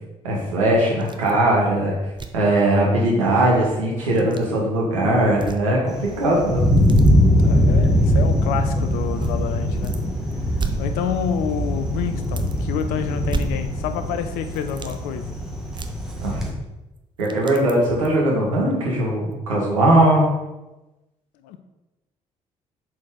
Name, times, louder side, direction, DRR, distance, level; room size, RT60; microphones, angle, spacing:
voice 1, 0.2-2.0 2.3-6.6 16.2-16.5 17.2-20.3, right 1 dB, 75° right, -4 dB, 1.5 m, -19 dB
sound 1, 1.0-1.4 1.7-1.8 2.1-2.5 4.0-4.5 5.3-5.9 6.2-7.1 8.0-8.1 9.2-10.0 10.3-11.5 11.8-11.9 12.2-12.8 13.3-14.1 14.4-15.0 15.7-16.6 17.0-18.2 18.7-18.8 19.3-19.4, right 5 dB, 25° right, 0.7 m, -35 dB
Thunder, 5.9-16.5, equal, 5° right, 1.4 m, -21 dB
voice 2, 7.4-10.0 10.8-15.4 21.4-21.6, left 8 dB, 60° left, 8 dB, 0.6 m, -28 dB
7.5 x 4.3 x 3.8 m, 1.0 s
figure-of-eight pair, 45°, 17 cm